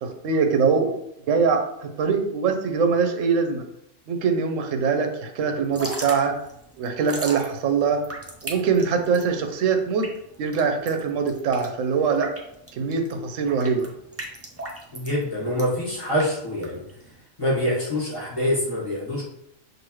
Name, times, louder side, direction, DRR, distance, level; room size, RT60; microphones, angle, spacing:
voice 1, 0.0-0.9 1.3-3.6 4.1-6.4 6.8-8.0 8.4-10.1 10.4-12.3 12.8-13.9, right 5 dB, 75° right, 5 dB, 1.0 m, -23 dB
Drip / Trickle dribble, 5.6-17.2, right 1 dB, 20° right, 0.4 m, -38 dB
voice 2, 14.9-16.8 17.4-19.2, left 1 dB, 25° left, -7 dB, 1.6 m, -25 dB
6.2 x 2.7 x 3.0 m, 0.77 s
omnidirectional pair, 1.4 m